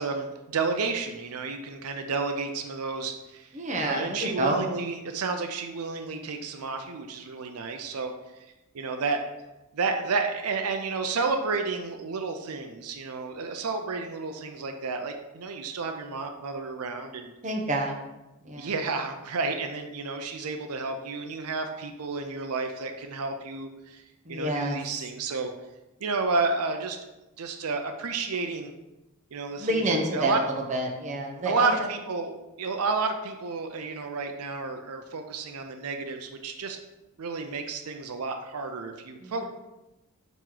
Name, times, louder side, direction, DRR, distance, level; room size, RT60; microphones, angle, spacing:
voice 1, 0.0-3.5 3.8-8.1 8.7-9.2 9.7-17.3 18.6-24.0 24.3-25.5 26.0-27.0 27.4-28.7 29.3-29.7 30.1-30.4 31.5-36.8 37.2-39.4, right 4 dB, 80° right, 5 dB, 0.5 m, -31 dB
voice 2, 3.5-4.6 17.4-18.0 18.4-18.7 24.2-24.8 29.6-31.8 39.2-39.4, right 1 dB, 35° right, 1 dB, 0.9 m, -28 dB
9.0 x 3.0 x 3.8 m, 1.0 s
head